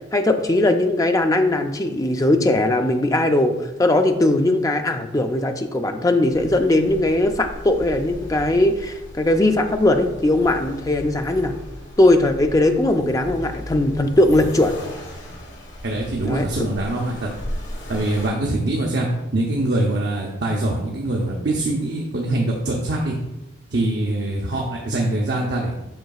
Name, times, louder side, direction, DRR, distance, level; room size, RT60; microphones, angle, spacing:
voice 1, 0.1-3.5 3.8-11.5 12.0-14.7 16.2-16.5, left 1 dB, 15° left, 6 dB, 0.4 m, -19 dB
Accelerating revving vroom, 6.3-18.3, left 1 dB, 65° left, 1.4 m, -36 dB
voice 2, 15.8-17.3 17.9-23.1 23.7-25.7, right 1 dB, 55° right, -1 dB, 0.7 m, -23 dB
7.8 x 5.7 x 2.3 m, 0.99 s
head